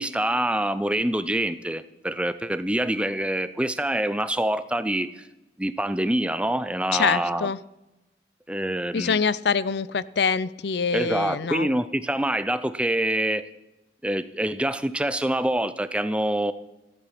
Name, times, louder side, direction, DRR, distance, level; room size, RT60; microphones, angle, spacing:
voice 1, 0.0-5.2 5.6-7.5 8.5-9.2 10.9-13.4 14.0-16.5, right 1 dB, 5° right, 13 dB, 0.5 m, -26 dB
voice 2, 6.9-7.6 8.9-11.7, left 5 dB, 70° left, 18 dB, 0.5 m, -25 dB
14.5 x 12.0 x 6.0 m, 0.95 s
head